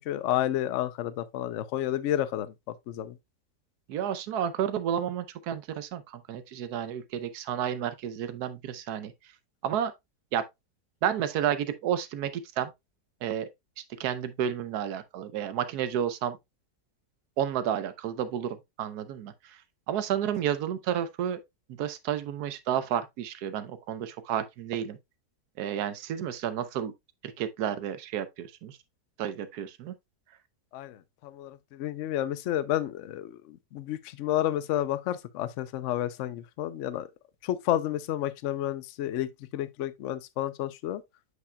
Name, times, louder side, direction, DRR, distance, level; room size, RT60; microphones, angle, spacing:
voice 1, 0.1-2.5 2.9-3.2 30.7-37.1 37.4-41.0, left 12 dB, 65° left, 0.8 m, -31 dB
voice 2, 3.9-9.1 9.6-9.9 10.3-10.4 11.0-12.7 13.2-13.5 13.8-16.4 17.4-19.6 19.9-21.4 21.7-25.0 25.6-26.9 27.2-28.8 29.2-30.0, right 9 dB, 85° right, 1.3 m, -31 dB
7.8 x 5.7 x 2.2 m
omnidirectional pair, 1.6 m